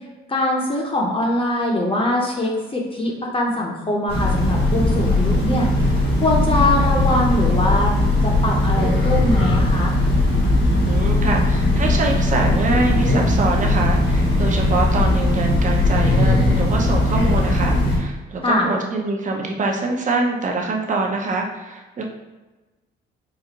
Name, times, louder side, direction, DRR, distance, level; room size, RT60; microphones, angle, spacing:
voice 1, 0.3-7.9 8.2-9.9 18.4-18.7, left 1 dB, 25° left, -1 dB, 0.7 m, -22 dB
Train, 4.1-18.0, left 1 dB, 85° left, 1.3 m, -18 dB
voice 2, 10.9-22.0, right 3 dB, 40° right, 1 dB, 0.7 m, -24 dB
4.1 x 2.4 x 2.9 m, 1.2 s
cardioid pair, 90°, 20 cm